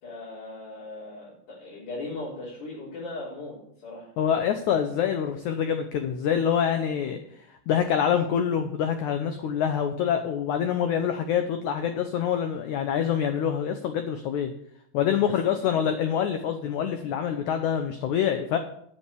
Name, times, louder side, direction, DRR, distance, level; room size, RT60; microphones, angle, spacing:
voice 1, 0.0-3.6 3.8-4.1 15.3-15.8, left 2 dB, 55° left, -10 dB, 5.3 m, -38 dB
voice 2, 4.2-7.2 7.7-14.5 14.9-18.6, left 8 dB, 90° left, 7 dB, 1.6 m, -26 dB
7.7 x 7.3 x 8.3 m, 0.70 s
omnidirectional pair, 4.4 m